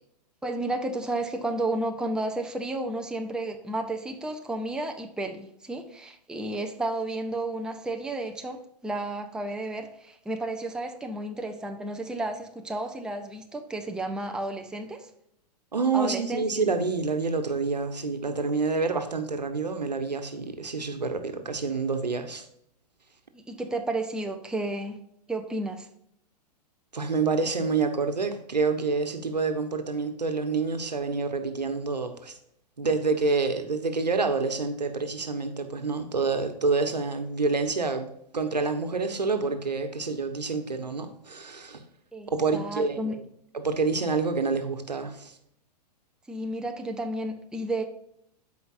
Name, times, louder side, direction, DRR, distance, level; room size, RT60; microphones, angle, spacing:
voice 1, 0.4-15.1 15.9-16.4 23.3-25.0 25.3-25.9 42.1-43.1 46.3-47.8, right 2 dB, 5° right, 3 dB, 0.8 m, -32 dB
voice 2, 15.7-22.4 26.9-32.3 32.8-41.8 42.3-43.2 43.5-45.3, right 4 dB, 85° right, 7 dB, 1.2 m, -27 dB
13.5 x 5.0 x 2.6 m, 0.72 s
figure-of-eight pair, 105°, 21 cm